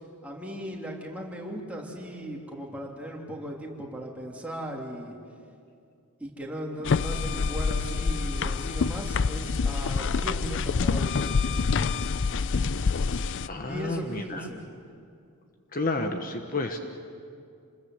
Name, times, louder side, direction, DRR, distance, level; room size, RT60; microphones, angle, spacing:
voice 1, 0.2-5.2 6.2-11.2 13.6-14.6, equal, 5° right, -2 dB, 3.2 m, -37 dB
sound 1, 6.8-13.5, left 4 dB, 55° left, 0.5 m, -26 dB
voice 2, 13.5-14.4 15.7-16.8, left 2 dB, 40° left, 5 dB, 1.2 m, -30 dB
28.5 x 21.0 x 8.0 m, 2.5 s
head